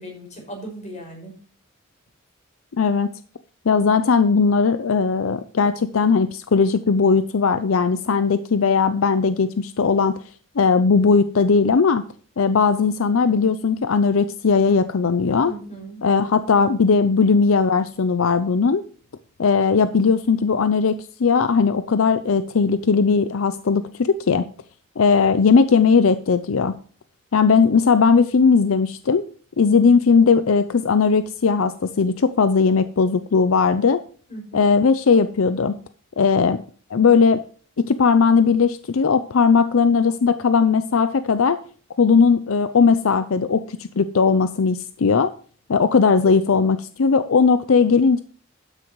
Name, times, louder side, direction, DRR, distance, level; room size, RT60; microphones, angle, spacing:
voice 1, 0.0-1.3 15.4-16.0 34.3-34.7, right 1 dB, 35° left, 0 dB, 5.9 m, -37 dB
voice 2, 2.8-3.1 3.7-10.2 10.6-12.0 12.4-15.5 16.0-18.8 19.4-24.5 25.0-26.7 27.3-29.2 29.6-34.0 34.5-35.7 36.2-36.6 36.9-37.4 37.8-41.6 42.0-45.3 45.7-48.2, left 5 dB, 80° left, 12 dB, 0.5 m, -18 dB
12.5 x 9.7 x 3.1 m, 0.43 s
head